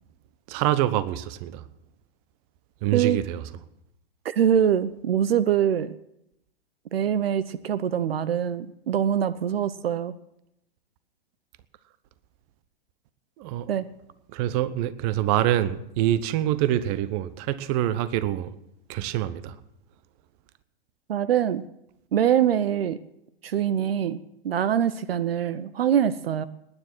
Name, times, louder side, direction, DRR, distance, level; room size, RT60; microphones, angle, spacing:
voice 1, 0.5-1.6 2.8-3.4 13.4-13.7 14.3-18.5 18.9-19.6, right 12 dB, 40° right, 1.0 m, -25 dB
voice 2, 4.2-5.9 6.9-10.1 13.7-13.9 21.1-21.6 22.1-23.0 23.4-24.2 24.4-26.5, right 9 dB, 70° right, 0.7 m, -24 dB
19.5 x 9.8 x 6.1 m
hypercardioid pair, 110°, 30 cm